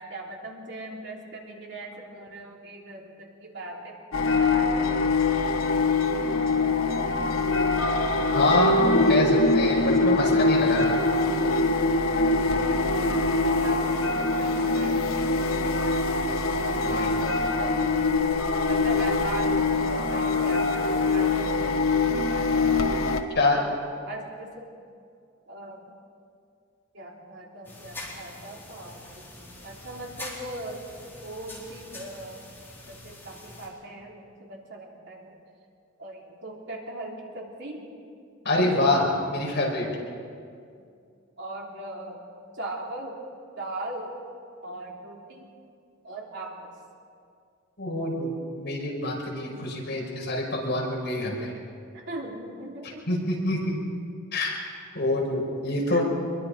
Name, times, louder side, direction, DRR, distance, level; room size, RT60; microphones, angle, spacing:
voice 1, 0.0-5.0 13.6-16.2 17.1-18.0 18.7-22.6 23.5-23.8 24.1-24.7 25.5-25.8 26.9-30.8 31.2-32.4 32.9-35.4 36.0-37.9 41.4-42.2 42.5-43.2 43.6-44.2 44.6-45.5 46.0-46.7 49.5-49.6 51.9-53.2 55.9-56.0, right 1 dB, 55° right, -2 dB, 3.6 m, -40 dB
sound 1, 4.1-23.2, left 3 dB, 85° left, 1.5 m, -23 dB
voice 2, 8.3-11.0 16.7-17.3 23.3-23.6 38.4-39.9 47.8-48.3 48.6-51.5 53.1-53.8 54.3-54.6 54.9-56.0, left 2 dB, 55° left, -2 dB, 5.6 m, -26 dB
sound 2, 27.6-33.7, left 2 dB, 10° left, 4.4 m, -44 dB
25.5 x 22.5 x 5.2 m, 2.3 s
head